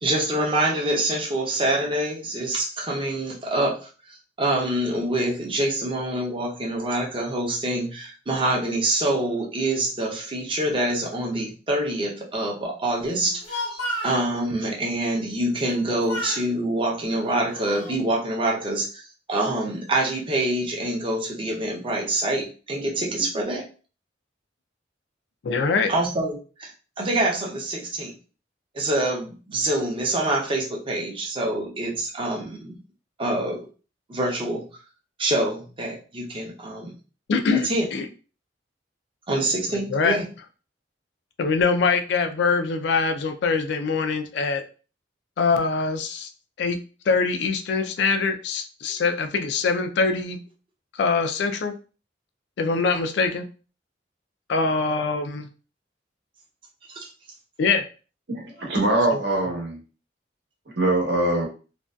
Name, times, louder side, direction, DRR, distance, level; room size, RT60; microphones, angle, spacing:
voice 1, 0.0-23.6 25.9-26.7 27.0-28.1 28.7-32.8 33.2-33.7 34.1-34.7 35.2-36.9 37.5-37.9 39.3-40.2 56.9-57.1, right 1 dB, 30° right, -1 dB, 0.6 m, -26 dB
Speech, 13.2-14.2 15.6-16.5 17.2-18.0, equal, 85° left, 1.0 m, -32 dB
voice 2, 25.4-25.9 37.3-38.1 39.9-40.2 41.4-44.6 45.4-46.3 46.6-46.8 47.1-50.4 50.9-51.7 52.6-53.5 54.5-55.5 57.6-57.8, left 4 dB, 65° left, 7 dB, 0.3 m, -23 dB
voice 3, 58.3-59.8 60.8-61.5, right 1 dB, 65° right, -1 dB, 0.9 m, -22 dB
2.5 x 2.2 x 2.2 m, 0.36 s
head